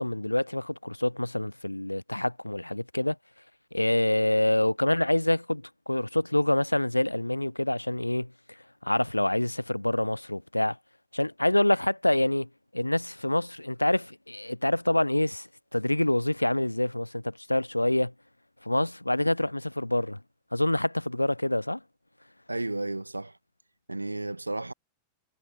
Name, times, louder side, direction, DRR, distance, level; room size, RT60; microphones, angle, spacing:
voice 1, 0.0-3.2 3.7-8.3 8.8-10.8 11.1-18.1 18.6-20.2 20.5-21.8, left 1 dB, 85° left, 0.8 m, -26 dB
voice 2, 22.5-23.4 23.9-24.7, right 2 dB, 85° right, 1.8 m, -33 dB
figure-of-eight pair, 90°, 0 cm